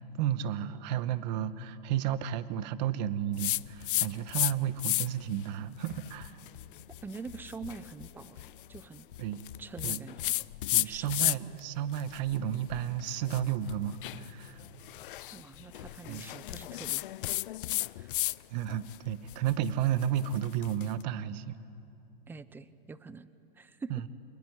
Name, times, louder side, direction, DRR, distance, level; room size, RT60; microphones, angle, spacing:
voice 1, 0.0-6.4 9.2-9.4 9.8-10.0 10.7-14.6 16.1-16.3 18.5-21.6 23.9-24.0, right 10 dB, 45° right, 13 dB, 1.2 m, -32 dB
sound 1, 3.4-4.5 4.8-5.3 5.8-11.6 11.9-18.4 18.7-20.9, left 16 dB, 60° left, 0.6 m, -34 dB
voice 2, 7.0-9.0 9.6-10.4 10.7-11.3 15.3-17.0 18.0-18.1 22.3-23.3 23.6-24.0, right 4 dB, 5° right, 15 dB, 0.6 m, -45 dB
27.5 x 21.5 x 9.8 m, 2.7 s
hypercardioid pair, 135°, 30 cm